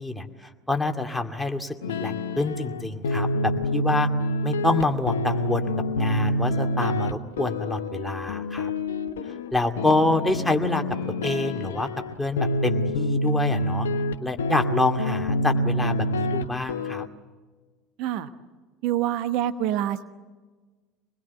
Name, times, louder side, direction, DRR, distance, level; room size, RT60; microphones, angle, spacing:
voice 1, 0.0-4.1 4.4-8.7 9.5-10.8 11.2-11.9 12.2-13.9 14.2-17.0, left 2 dB, 5° left, 4 dB, 2.3 m, -27 dB
sound 1, 1.8-17.1, left 1 dB, 80° left, 0.9 m, -27 dB
voice 2, 18.8-20.0, right 11 dB, 60° right, 11 dB, 1.0 m, -26 dB
26.0 x 20.5 x 8.3 m, 1.3 s
hypercardioid pair, 70°, 0 cm